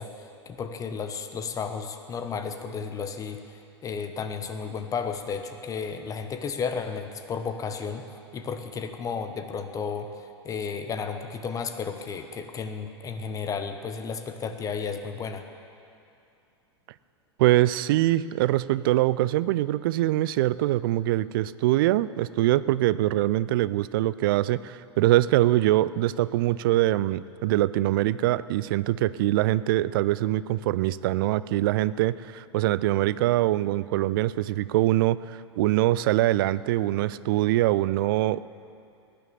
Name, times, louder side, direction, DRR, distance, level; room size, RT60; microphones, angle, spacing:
voice 1, 0.0-15.5, left 5 dB, 25° left, 7 dB, 1.1 m, -33 dB
voice 2, 17.4-38.4, right 15 dB, 50° right, 17 dB, 0.4 m, -23 dB
18.5 x 10.0 x 6.9 m, 2.5 s
figure-of-eight pair, 95°, 15 cm